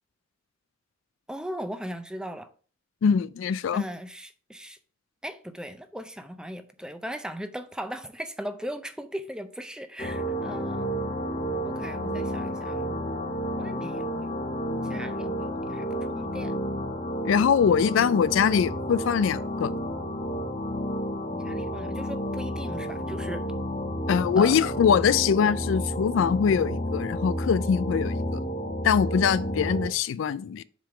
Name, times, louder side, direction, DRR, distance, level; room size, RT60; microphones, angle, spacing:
voice 1, 1.3-2.5 3.7-4.8 5.2-10.9 11.6-13.0 13.5-14.3 14.8-16.6 21.3-23.4 24.4-24.5, equal, 5° right, 0.5 m, -38 dB
voice 2, 3.0-3.8 17.2-19.7 24.1-28.4 28.8-30.6, left 7 dB, 75° left, 0.3 m, -23 dB
sound 1, 10.0-29.9, equal, 35° left, 1.1 m, -31 dB
7.3 x 3.7 x 4.8 m
head